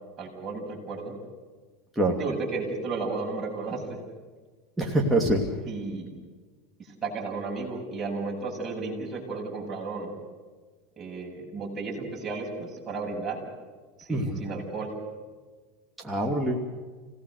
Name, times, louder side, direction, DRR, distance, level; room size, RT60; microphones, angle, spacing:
voice 1, 0.2-1.1 2.2-4.0 5.7-6.1 7.0-10.2 11.0-13.4 14.0-14.9, right 3 dB, 25° right, -2 dB, 8.0 m, -33 dB
voice 2, 4.8-5.5 14.1-14.4 16.0-16.7, right 1 dB, 5° right, -1 dB, 2.7 m, -25 dB
29.5 x 18.0 x 6.7 m, 1.4 s
supercardioid pair, 120°, 0 cm